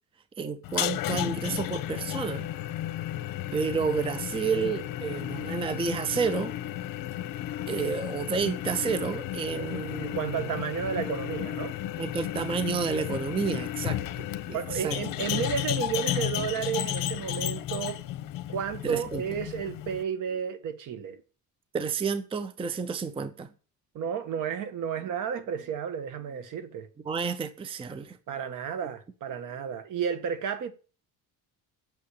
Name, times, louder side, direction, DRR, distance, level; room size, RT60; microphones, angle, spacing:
voice 1, 0.4-2.5 3.5-6.5 7.7-10.5 12.0-15.0 18.8-19.2 21.7-23.5 27.1-28.2, right 5 dB, 15° right, 0.6 m, -30 dB
sound 1, 0.6-20.0, left 13 dB, 65° left, 1.1 m, -33 dB
voice 2, 10.0-11.8 14.5-18.0 18.5-21.2 23.9-26.9 28.3-30.7, right 7 dB, 60° right, 1.5 m, -32 dB
8.7 x 6.7 x 8.3 m
cardioid pair, 150°, 36 cm